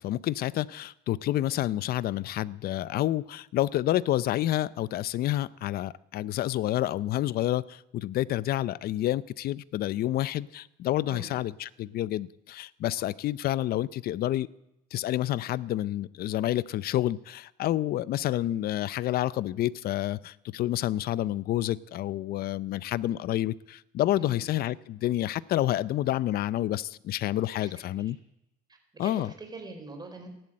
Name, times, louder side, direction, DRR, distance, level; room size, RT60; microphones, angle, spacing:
voice 1, 0.0-14.5 14.9-28.2 29.0-29.3, left 14 dB, 65° left, 20 dB, 0.6 m, -29 dB
voice 2, 28.7-30.3, right 3 dB, 25° right, 4 dB, 4.2 m, -43 dB
15.0 x 11.0 x 8.6 m, 0.85 s
cardioid pair, 110°, 17 cm